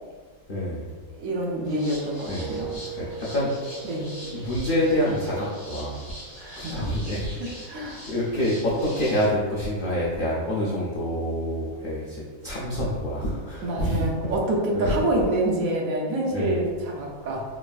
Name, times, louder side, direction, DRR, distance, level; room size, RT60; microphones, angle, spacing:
voice 1, 0.5-0.9 2.2-2.5 2.9-3.5 3.8-3.9 4.3-6.1 6.5-14.3 14.7-15.0 16.3-16.6, equal, 85° left, -6 dB, 0.4 m, -27 dB
voice 2, 1.2-2.7 3.8-4.1 6.4-6.9 7.7-8.0 13.6-17.4, right 1 dB, 80° right, -1 dB, 1.0 m, -27 dB
sound 1, 1.3-6.4 6.7-7.0, right 6 dB, 30° right, 1.1 m, -41 dB
sound 2, 1.6-9.3, equal, 40° left, 1.3 m, -43 dB
3.3 x 2.3 x 2.2 m, 1.5 s
omnidirectional pair, 1.5 m